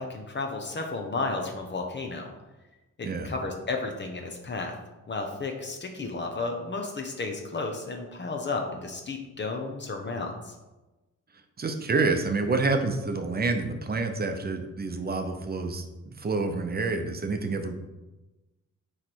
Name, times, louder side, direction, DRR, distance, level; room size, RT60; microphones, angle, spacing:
voice 1, 0.0-2.3 3.2-4.7 5.1-10.5, left 3 dB, 35° left, 2 dB, 0.8 m, -33 dB
voice 2, 11.6-17.8, right 3 dB, 30° right, 6 dB, 0.7 m, -28 dB
9.3 x 3.3 x 4.5 m, 1.1 s
wide cardioid pair, 135°, 30 cm